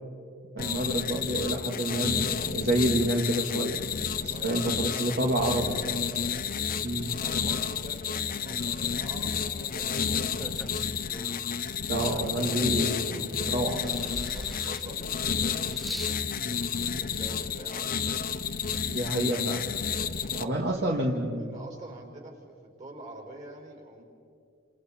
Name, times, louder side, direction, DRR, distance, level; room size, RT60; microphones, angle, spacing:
voice 1, 0.5-3.8 4.2-5.8 6.8-7.1 11.9-13.8 18.9-19.7 20.4-21.6, right 1 dB, 60° right, -1 dB, 1.9 m, -28 dB
sound 1, 0.6-20.4, left 7 dB, 50° left, 0.8 m, -31 dB
voice 2, 4.3-6.0 7.2-10.8 12.0-12.8 13.1-16.0 16.4-18.0 20.2-21.0 21.5-24.0, right 1 dB, 40° right, 1 dB, 4.8 m, -46 dB
sound 2, 10.4-11.5 12.1-13.2 13.6-16.2 17.1-17.2, equal, ahead, 0.6 m, -42 dB
29.0 x 27.5 x 4.4 m, 2.4 s
head